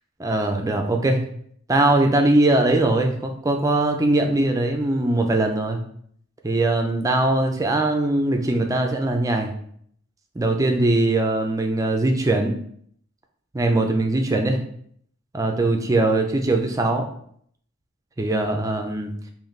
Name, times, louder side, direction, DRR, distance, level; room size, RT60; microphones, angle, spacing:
voice 1, 0.2-1.2 1.7-5.8 6.4-9.5 10.4-12.5 13.5-14.6 15.3-17.1 18.2-19.1, right 2 dB, 15° right, 3 dB, 0.4 m, -21 dB
4.0 x 3.0 x 3.2 m, 0.64 s
head